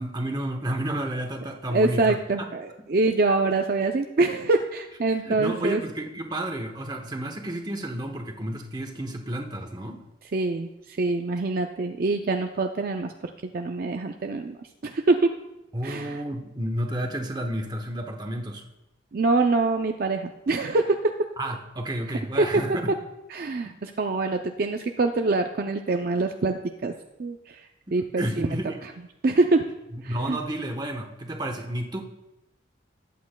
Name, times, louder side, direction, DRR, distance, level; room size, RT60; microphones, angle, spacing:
voice 1, 0.0-2.2 5.2-10.0 15.7-18.7 21.4-22.9 23.6-23.7 27.9-28.8 29.9-32.0, right 1 dB, 20° right, 4 dB, 0.9 m, -31 dB
voice 2, 1.7-5.8 10.3-13.1 13.5-15.4 15.8-16.2 19.1-21.1 22.4-22.6 23.3-26.9 27.2-28.5 29.2-29.7 30.0-30.4, right 3 dB, 50° right, 5 dB, 0.4 m, -25 dB
18.5 x 8.5 x 2.2 m, 0.93 s
head